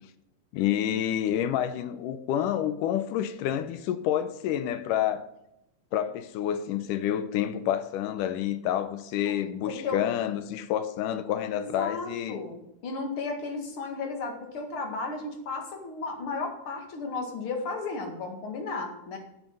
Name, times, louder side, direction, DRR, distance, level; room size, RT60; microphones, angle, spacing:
voice 1, 0.5-5.3 5.9-12.4, left 10 dB, 75° left, 2.2 m, -28 dB
voice 2, 9.7-10.0 11.5-19.2, left 3 dB, 45° left, 2.5 m, -34 dB
11.0 x 9.0 x 5.3 m
omnidirectional pair, 3.9 m